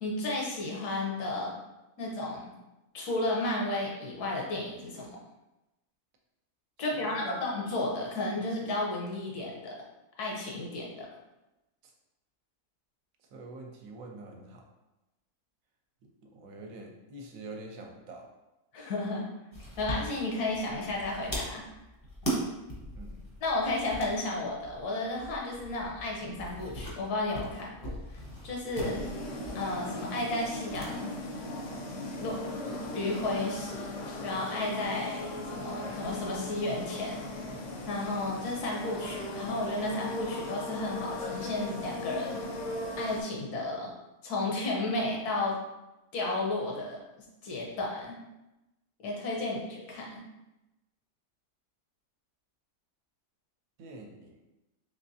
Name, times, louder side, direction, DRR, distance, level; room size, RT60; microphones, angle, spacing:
voice 1, 0.0-1.5 2.0-2.4 2.9-5.1 6.8-9.7 10.2-11.1 18.7-19.2 19.8-21.6 23.4-28.0 28.4-29.0 29.5-31.1 32.2-32.4 32.7-33.9 34.2-37.4 37.9-42.6 43.0-43.9 44.2-45.6 46.1-47.0 47.4-48.2 49.0-50.2, left 2 dB, 85° left, -2 dB, 1.4 m, -33 dB
voice 2, 6.9-7.4 11.8-11.9 13.3-14.6 16.3-18.3 23.0-23.2 53.8-54.4, right 2 dB, 70° right, 1 dB, 1.0 m, -45 dB
sound 1, 19.5-30.9 31.2-31.3 32.5-33.2, right 1 dB, 20° left, 0.6 m, -40 dB
sound 2, 28.8-43.2, left 1 dB, 65° left, 0.9 m, -38 dB
3.6 x 3.2 x 2.7 m, 0.98 s
omnidirectional pair, 1.6 m